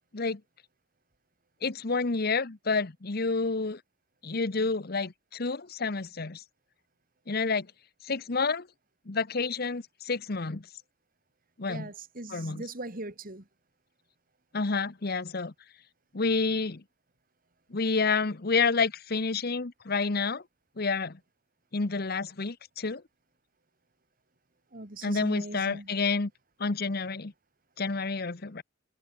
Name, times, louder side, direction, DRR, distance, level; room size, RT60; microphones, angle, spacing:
voice 1, 1.6-3.8 4.2-6.4 7.3-7.7 8.0-8.7 9.1-10.7 11.6-11.9 12.3-12.6 14.5-15.5 16.1-16.8 17.7-20.4 20.8-21.2 21.7-23.0 25.0-26.3 26.6-27.3 27.8-28.6, left 4 dB, 55° left, 1.0 m, -29 dB
voice 2, 11.7-13.4 24.7-25.9, right 2 dB, 50° right, 3.0 m, -40 dB
head